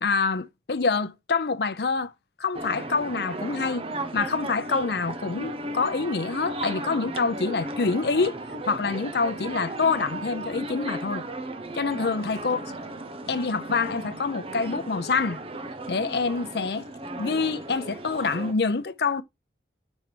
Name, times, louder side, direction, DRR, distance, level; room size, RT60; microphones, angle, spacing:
voice 1, 0.0-2.1 2.4-3.9 4.1-8.4 8.7-11.2 11.7-12.7 13.3-15.4 15.9-16.9 17.2-19.2, left 4 dB, 65° left, 0.6 m, -26 dB
sound 1, 2.5-18.5, right 2 dB, 30° right, 0.8 m, -35 dB
5.4 x 4.6 x 4.5 m
head